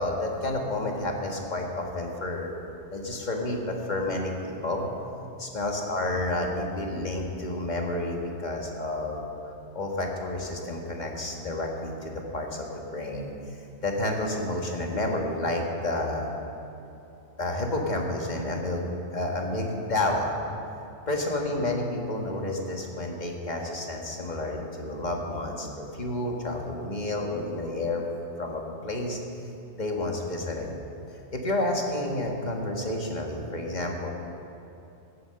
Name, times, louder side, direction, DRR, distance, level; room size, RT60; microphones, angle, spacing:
voice 1, 0.0-2.5 2.9-4.9 5.4-9.2 9.7-13.3 13.8-16.3 17.4-18.8 19.1-20.3 21.1-28.0 28.4-29.2 29.8-30.7 31.3-34.1, left 2 dB, 40° left, 1 dB, 1.6 m, -30 dB
16.0 x 7.9 x 6.7 m, 2.8 s
omnidirectional pair, 1.1 m